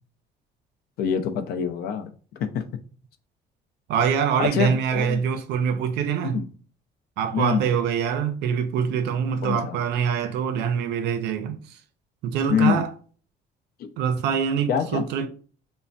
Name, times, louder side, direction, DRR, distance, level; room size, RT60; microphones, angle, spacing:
voice 1, 1.0-2.1 2.4-2.6 4.4-5.2 6.3-6.4 7.3-7.6 9.4-9.8 12.5-12.8 13.8-13.9 14.7-15.0, left 7 dB, 65° left, 0.4 m, -25 dB
voice 2, 3.9-6.4 7.2-11.8 12.2-12.9 14.0-15.3, right 7 dB, 80° right, 0.5 m, -24 dB
3.2 x 2.1 x 2.5 m
cardioid pair, 110°, 17 cm